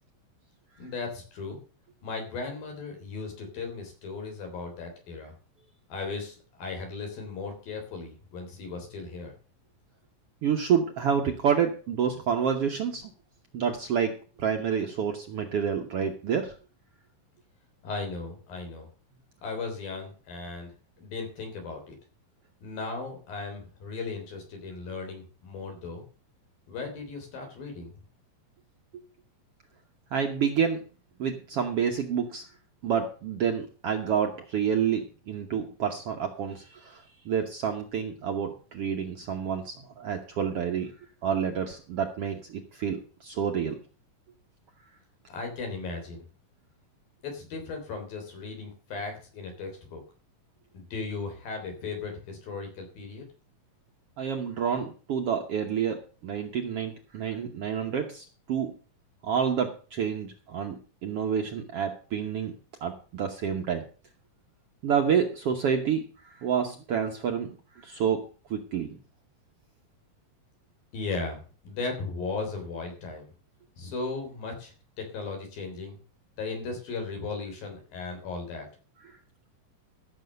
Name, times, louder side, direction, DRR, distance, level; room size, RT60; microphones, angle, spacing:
voice 1, 0.8-1.6 2.0-5.3 5.9-9.3 17.8-18.9 19.4-20.7 21.0-22.0 22.6-26.1 26.7-27.9 45.3-46.2 47.2-50.0 50.7-53.3 70.9-73.3 73.8-76.0 76.4-78.7, left 4 dB, 85° left, 3 dB, 5.4 m, -36 dB
voice 2, 10.4-13.1 13.5-16.5 28.9-29.0 30.1-30.8 31.2-32.4 32.8-40.9 41.2-43.8 54.2-56.0 56.2-58.7 59.2-62.5 62.8-63.8 64.8-66.1 66.4-67.5 67.8-69.0, right 7 dB, 65° right, 4 dB, 1.5 m, -28 dB
13.5 x 6.7 x 6.6 m, 0.38 s
omnidirectional pair, 4.0 m